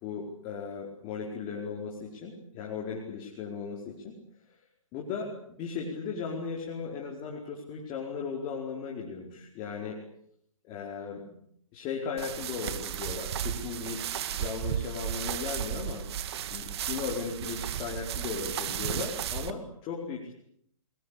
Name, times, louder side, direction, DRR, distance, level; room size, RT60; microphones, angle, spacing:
voice 1, 0.0-4.1 4.5-4.6 4.9-10.0 10.6-11.2 11.7-14.0 14.3-16.0 16.5-20.4, left 5 dB, 30° left, 0 dB, 4.9 m, -37 dB
sound 1, 12.2-19.5, right 9 dB, 50° right, 2.2 m, -34 dB
30.0 x 20.5 x 8.6 m, 0.70 s
hypercardioid pair, 130°, 17 cm